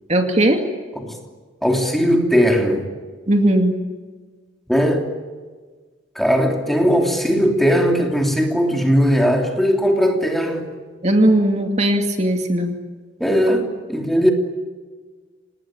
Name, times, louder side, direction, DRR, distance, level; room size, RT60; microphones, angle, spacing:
voice 1, 0.1-0.6 3.3-3.8 11.0-12.7, right 1 dB, 35° right, 4 dB, 2.4 m, -17 dB
voice 2, 1.6-2.9 4.7-5.1 6.1-10.7 13.2-14.3, equal, ahead, 2 dB, 3.1 m, -18 dB
27.5 x 20.0 x 9.1 m, 1.4 s
head